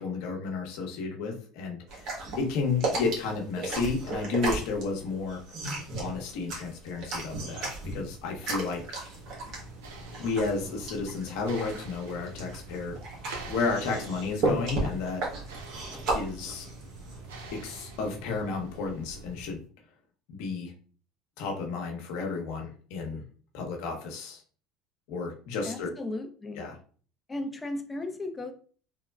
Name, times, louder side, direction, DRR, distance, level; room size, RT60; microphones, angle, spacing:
voice 1, 0.0-5.4 6.0-9.0 10.2-13.0 13.5-15.2 16.1-16.7 17.5-19.6 20.3-20.7 21.4-23.2 23.5-24.4 25.1-25.9 26.6-26.8, left 4 dB, 75° left, 1 dB, 0.8 m, -32 dB
sound 1, 1.9-17.5, right 2 dB, 60° right, 1.2 m, -35 dB
sound 2, 8.1-19.6, right 3 dB, 90° right, 0.6 m, -45 dB
voice 2, 25.6-26.6 27.3-28.5, left 2 dB, 20° left, 6 dB, 0.5 m, -35 dB
3.5 x 2.1 x 2.2 m, 0.42 s
supercardioid pair, 90°, 0 cm